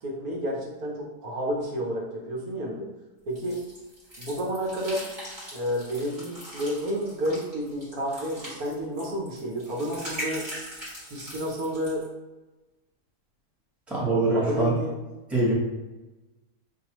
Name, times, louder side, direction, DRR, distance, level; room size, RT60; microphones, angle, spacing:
voice 1, 0.0-2.9 3.3-3.6 4.2-5.1 5.5-10.5 11.1-12.1 14.3-15.0, equal, 75° right, -2 dB, 1.4 m, -30 dB
sound 1, 3.4-12.1, equal, 30° right, 1.6 m, -41 dB
voice 2, 13.9-14.7 15.3-15.5, right 2 dB, ahead, -6 dB, 0.9 m, -23 dB
5.7 x 2.6 x 3.0 m, 1.1 s
omnidirectional pair, 1.6 m